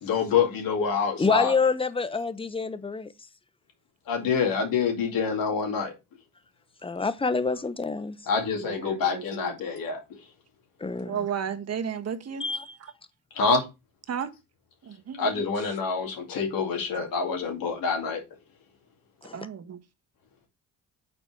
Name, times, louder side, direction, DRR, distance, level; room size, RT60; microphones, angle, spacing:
voice 1, 0.0-1.5 4.1-5.9 8.3-10.0 13.3-13.6 15.2-18.2, left 5 dB, 80° left, 2.3 m, -26 dB
voice 2, 1.2-3.1 6.8-8.2 10.8-11.3 12.4-12.7 19.2-19.5, left 4 dB, 15° left, 0.8 m, -27 dB
voice 3, 8.6-9.5 11.0-12.7 14.1-14.3 14.8-15.4 19.3-19.8, right 7 dB, 50° right, 1.1 m, -34 dB
6.6 x 4.4 x 4.5 m
cardioid pair, 70°, 34 cm